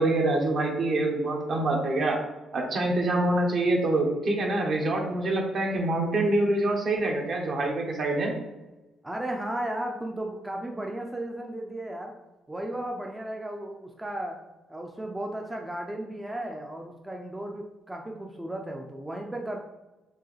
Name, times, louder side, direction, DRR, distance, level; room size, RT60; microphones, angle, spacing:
voice 1, 0.0-2.2 2.5-8.3, right 2 dB, 55° right, 1 dB, 1.1 m, -25 dB
voice 2, 9.0-12.1 12.5-14.4 14.7-19.6, right 1 dB, 10° right, 1 dB, 0.5 m, -35 dB
4.6 x 3.4 x 3.3 m, 1.1 s
cardioid pair, 90°, 0 cm